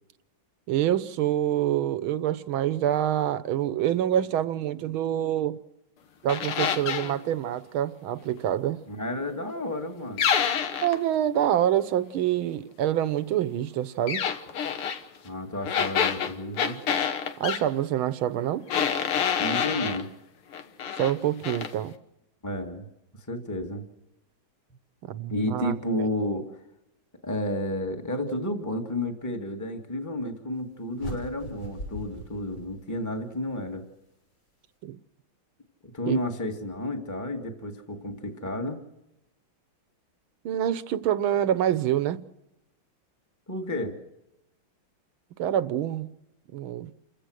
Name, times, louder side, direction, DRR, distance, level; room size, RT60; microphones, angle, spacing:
voice 1, 0.7-5.6 6.2-8.8 10.8-14.2 17.4-18.7 20.9-22.0 25.1-26.1 34.8-35.0 36.1-36.2 40.5-42.2 45.4-46.1 46.5-46.9, right 11 dB, 75° right, 1.7 m, -26 dB
sound 1, 6.3-7.1 10.2-11.0 14.1-15.0 15.7-17.6 18.7-20.0 20.5-21.1 21.4-21.7, left 7 dB, 85° left, 2.2 m, -27 dB
voice 2, 8.9-10.3 15.2-16.8 19.4-20.1 22.4-22.9 23.3-23.8 25.3-26.5 27.2-33.8 35.9-38.8 43.5-43.9, left 1 dB, 10° left, 1.9 m, -31 dB
sound 2, 31.0-33.3, equal, 60° left, 6.7 m, -40 dB
28.5 x 16.0 x 6.4 m
omnidirectional pair, 2.3 m